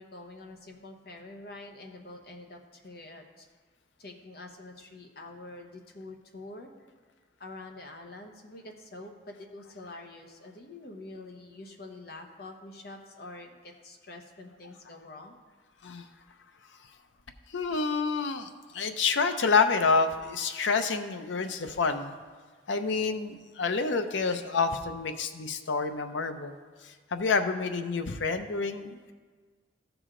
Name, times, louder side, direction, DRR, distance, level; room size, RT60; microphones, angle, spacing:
voice 1, 0.0-3.5 4.0-6.7 7.4-15.4, left 2 dB, 55° left, 2 dB, 1.0 m, -46 dB
voice 2, 17.5-18.5 18.7-22.2 22.7-26.5 27.1-29.1, left 4 dB, 80° left, 8 dB, 0.6 m, -28 dB
14.0 x 4.9 x 3.8 m, 1.5 s
head